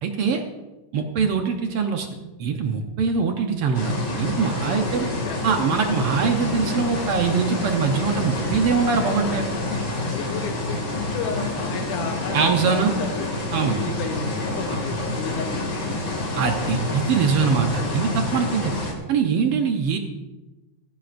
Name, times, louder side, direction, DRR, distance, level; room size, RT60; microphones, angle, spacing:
voice 1, 0.0-0.4 0.9-2.1 2.4-5.1 5.4-9.4 12.3-12.9 13.5-13.8 16.4-18.7 19.1-20.0, right 5 dB, 70° right, 4 dB, 1.4 m, -22 dB
sound 1, 3.7-18.9, left 2 dB, 40° left, 2.9 m, -27 dB
voice 2, 4.6-5.6 9.0-13.3 13.7-16.3, left 6 dB, 85° left, 2 dB, 2.5 m, -34 dB
15.5 x 15.5 x 2.6 m, 1.1 s
omnidirectional pair, 3.6 m